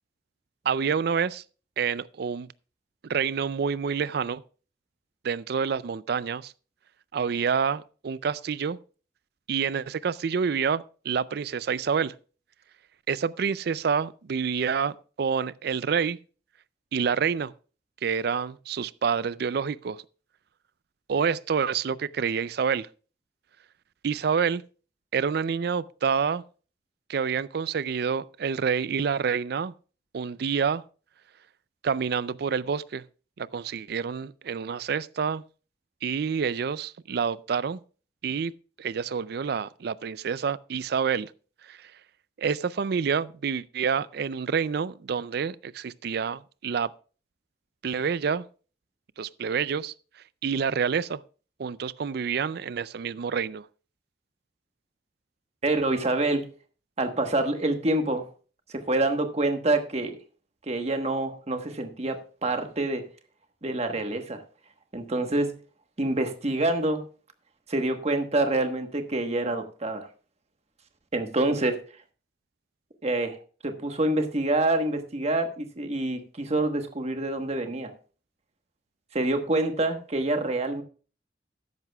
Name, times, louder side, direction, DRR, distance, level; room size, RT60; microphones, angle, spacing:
voice 1, 0.7-1.4 1.8-2.5 3.0-4.4 5.2-6.5 7.1-8.8 9.5-12.1 13.1-16.2 16.9-17.5 18.0-20.0 21.1-22.9 24.0-24.6 25.1-26.4 27.1-29.7 30.1-30.8 31.8-33.0 33.4-35.4 36.0-37.8 38.2-38.5 38.8-41.3 41.7-41.9 42.4-46.9 47.8-48.4 49.2-49.9 50.4-51.2 51.6-53.7, right 6 dB, 60° right, 0.4 m, -28 dB
voice 2, 55.6-56.5 57.0-58.3 58.7-60.2 60.7-63.0 63.6-64.4 64.9-65.6 66.0-67.0 67.7-70.1 71.1-71.8 73.0-73.4 73.6-77.9 79.1-80.8, right 2 dB, 35° right, 1.2 m, -26 dB
13.5 x 11.0 x 2.3 m
head